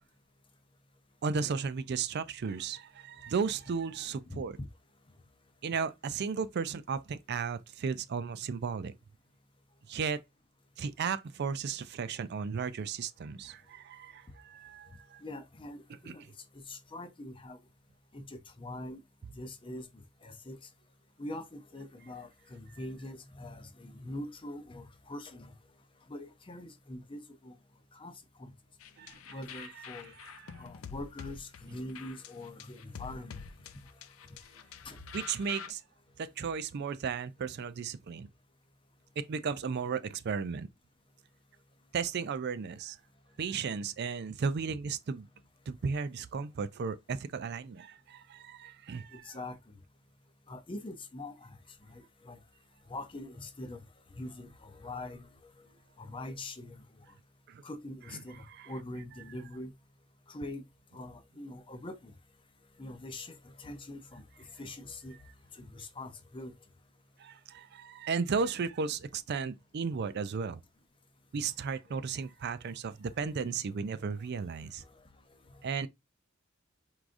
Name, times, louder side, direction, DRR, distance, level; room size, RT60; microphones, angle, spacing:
voice 1, 1.2-4.6 5.6-8.9 9.9-10.2 10.8-15.2 16.1-16.2 29.0-29.4 30.5-30.6 35.1-35.8 36.2-38.3 39.2-40.7 41.9-43.0 43.4-45.3 45.7-49.2 57.5-57.6 58.6-58.7 67.2-70.6 71.3-74.8 75.6-75.9, right 5 dB, 55° right, 0.4 m, -35 dB
voice 2, 15.2-16.2 16.5-17.6 18.1-19.0 19.3-19.9 20.2-20.6 21.2-25.5 26.1-27.6 27.9-28.1 28.4-28.5 29.3-30.1 30.6-33.4 34.5-34.6 34.8-35.0 49.1-49.8 50.5-51.6 51.8-52.4 52.9-53.8 54.2-55.3 56.0-56.8 57.6-59.7 60.3-60.6 60.9-62.1 62.8-64.2 64.6-65.2 65.6-66.5, left 1 dB, 25° left, 0.6 m, -43 dB
sound 1, 28.8-35.7, left 7 dB, 80° left, 0.4 m, -47 dB
4.7 x 3.7 x 2.5 m
head